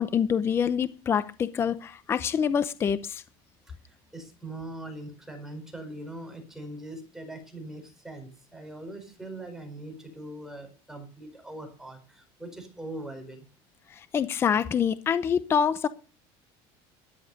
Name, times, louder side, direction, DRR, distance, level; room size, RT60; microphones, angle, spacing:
voice 1, 0.0-3.2 14.0-15.9, left 7 dB, 20° left, 0.6 m, -26 dB
voice 2, 3.9-13.4, right 1 dB, 5° right, 4.8 m, -41 dB
13.5 x 11.0 x 6.5 m
cardioid pair, 175°, 12 cm